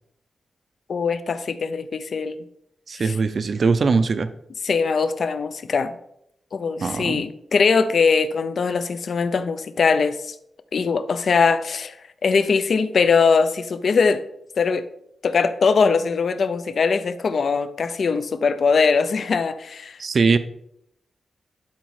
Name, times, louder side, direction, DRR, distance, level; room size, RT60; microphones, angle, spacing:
voice 1, 0.9-2.4 3.0-3.1 4.6-6.0 6.5-10.3 10.7-12.0 12.2-14.2 14.6-14.9 15.2-20.0, left 5 dB, 50° left, 0.5 m, -21 dB
voice 2, 2.9-4.3 6.8-7.2 20.0-20.4, right 4 dB, 40° right, 0.5 m, -21 dB
11.5 x 4.1 x 4.8 m
wide cardioid pair, 175°, 0 cm